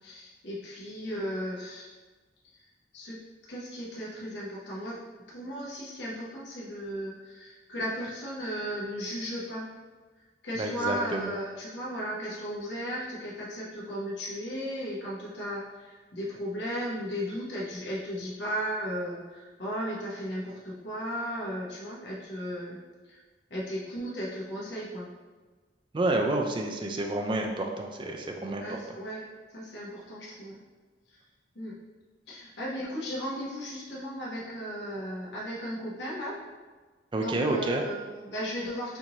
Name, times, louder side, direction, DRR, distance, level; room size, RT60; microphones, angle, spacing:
voice 1, 0.0-1.9 2.9-3.2 3.5-5.0 5.3-9.7 10.4-22.8 23.1-23.2 23.5-25.1 28.6-30.6 31.5-31.7 32.3-36.4 37.2-39.0, equal, 80° left, -6 dB, 0.9 m, -35 dB
voice 2, 10.5-11.3 25.9-28.8 37.1-37.8, right 2 dB, 25° right, 3 dB, 0.3 m, -29 dB
4.3 x 2.6 x 2.9 m, 1.3 s
head